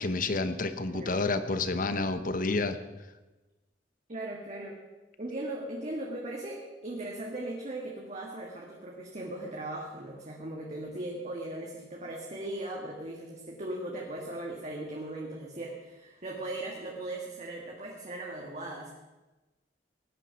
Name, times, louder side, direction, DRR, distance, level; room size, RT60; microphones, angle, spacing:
voice 1, 0.0-2.8, left 3 dB, 50° left, 11 dB, 1.0 m, -29 dB
voice 2, 0.9-1.2 4.1-4.8 5.2-18.9, right 1 dB, 40° right, -1 dB, 1.8 m, -38 dB
18.5 x 9.7 x 5.9 m, 1.1 s
head